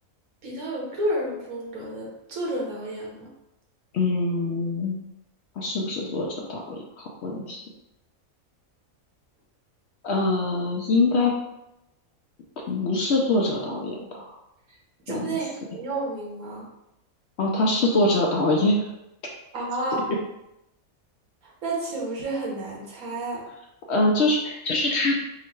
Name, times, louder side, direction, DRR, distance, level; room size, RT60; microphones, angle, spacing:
voice 1, 0.4-3.3 15.1-16.6 19.5-20.0 21.6-23.4, right 1 dB, 80° right, -2 dB, 1.5 m, -30 dB
voice 2, 3.9-4.9 5.6-7.6 10.0-11.3 12.7-14.4 15.1-15.3 17.4-18.9 23.9-25.2, left 2 dB, 65° left, -1 dB, 0.7 m, -24 dB
3.7 x 2.1 x 4.4 m, 0.88 s
omnidirectional pair, 1.5 m